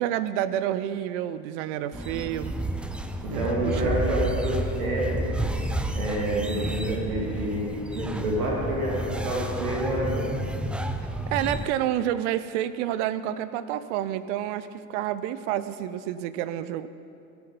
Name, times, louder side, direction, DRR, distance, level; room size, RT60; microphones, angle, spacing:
voice 1, 0.0-2.6 3.3-4.0 11.3-16.9, right 11 dB, 55° right, 14 dB, 0.7 m, -29 dB
sound 1, 1.9-11.7, right 1 dB, 5° right, 0.4 m, -31 dB
voice 2, 3.2-5.3 5.9-10.3, right 1 dB, 80° right, -4 dB, 2.9 m, -28 dB
16.5 x 7.8 x 5.4 m, 2.5 s
hypercardioid pair, 90°, 43 cm